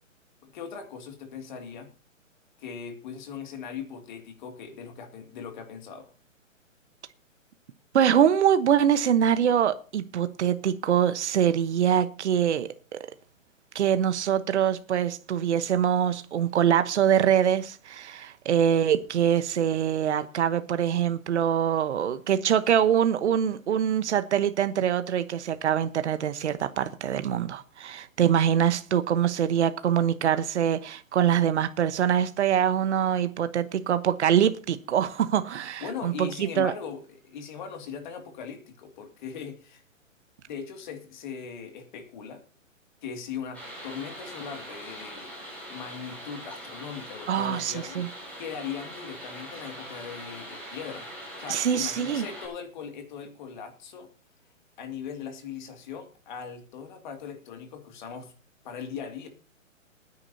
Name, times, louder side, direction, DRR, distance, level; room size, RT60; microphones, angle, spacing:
voice 1, 0.4-1.9 2.6-6.1 35.8-39.8 40.5-42.4 43.0-45.3 45.7-48.0 48.4-51.1 51.4-54.1 54.8-58.3 58.6-59.3, left 7 dB, 35° left, 2.3 m, -39 dB
voice 2, 7.9-13.0 13.7-36.7 47.3-48.1 51.5-52.2, right 9 dB, 60° right, 1.1 m, -24 dB
sound 1, 43.5-52.5, equal, 5° left, 5.6 m, -42 dB
22.0 x 9.9 x 2.7 m
hypercardioid pair, 160°, 40 cm